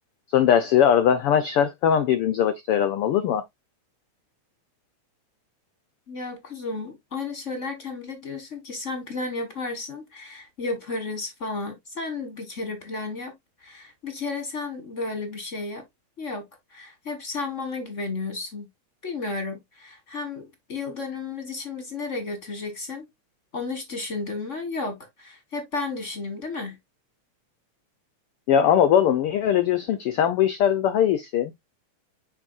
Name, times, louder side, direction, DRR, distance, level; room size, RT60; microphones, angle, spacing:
voice 1, 0.3-3.4 28.5-31.6, left 9 dB, 85° left, 1.2 m, -20 dB
voice 2, 6.1-13.3 13.6-15.8 16.2-16.4 16.7-18.7 19.0-23.0 23.5-26.8, left 3 dB, 35° left, 1.2 m, -33 dB
7.3 x 5.5 x 2.5 m
omnidirectional pair, 3.5 m